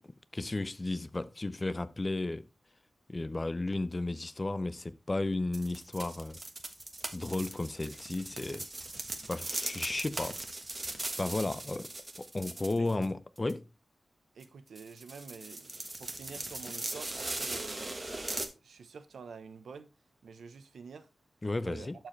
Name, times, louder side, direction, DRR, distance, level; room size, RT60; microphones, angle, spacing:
voice 1, 0.3-2.5 3.1-6.4 7.1-8.7 9.3-10.4 10.8-11.9 12.2-13.7 21.4-21.9, left 2 dB, 25° left, 0.6 m, -34 dB
sound 1, 5.5-13.1 13.4-13.5 14.4-14.5 14.8-18.5, right 2 dB, 25° right, 1.3 m, -39 dB
voice 2, 14.3-17.9 18.6-19.9 20.2-21.1 21.6-21.9, right 5 dB, 85° right, 0.9 m, -48 dB
11.5 x 4.8 x 3.2 m
wide cardioid pair, 90°, 0 cm